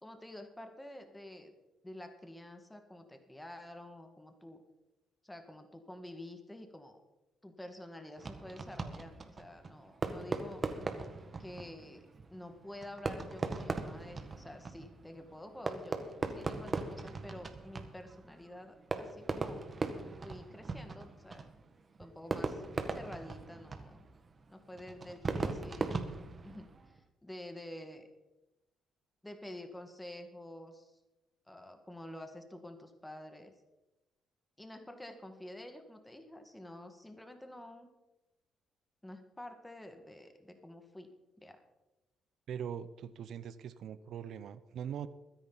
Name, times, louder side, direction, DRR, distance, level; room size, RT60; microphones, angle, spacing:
voice 1, 0.0-1.5 1.8-4.6 5.2-7.0 7.4-10.6 11.4-12.0 12.3-19.6 20.2-21.4 22.0-22.6 22.9-24.0 24.5-25.9 26.4-28.1 29.2-31.0 31.5-33.5 34.6-37.9 39.0-41.1 41.4-41.6, left 1 dB, 10° left, 6 dB, 1.8 m, -49 dB
Fireworks, 8.2-27.0, right 3 dB, 35° right, 1.6 m, -40 dB
voice 2, 42.5-45.1, right 8 dB, 70° right, 15 dB, 0.7 m, -41 dB
22.5 x 10.0 x 4.1 m, 1.0 s
cardioid pair, 90°, 0 cm